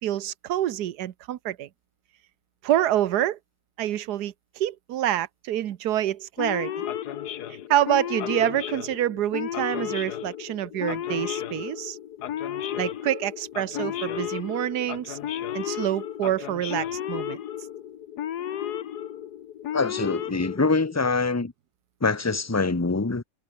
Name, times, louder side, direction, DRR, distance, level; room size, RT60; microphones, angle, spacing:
voice 1, 0.0-1.7 2.6-3.4 3.8-6.8 7.7-12.0 12.8-15.2 15.5-17.4, right 12 dB, 70° right, 1.4 m, -27 dB
Male speech man speaking / Siren, 6.4-21.1, left 10 dB, 70° left, 1.5 m, -33 dB
voice 2, 19.7-21.5 22.0-23.2, left 3 dB, 10° left, 0.8 m, -24 dB
omnidirectional pair, 1.8 m